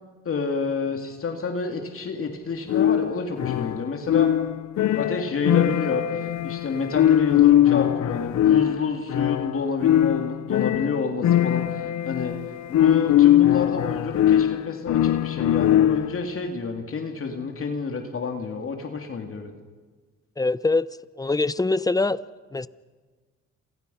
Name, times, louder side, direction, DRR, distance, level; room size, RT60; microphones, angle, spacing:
voice 1, 0.2-4.3 4.9-12.3 12.7-19.5, left 4 dB, 45° left, 3.0 m, -29 dB
sound 1, 2.7-16.3, left 12 dB, 65° left, 0.7 m, -21 dB
voice 2, 20.4-20.9 21.2-22.2 22.5-22.7, left 3 dB, 10° left, 0.7 m, -23 dB
28.5 x 28.0 x 5.8 m
cardioid pair, 90°, 30 cm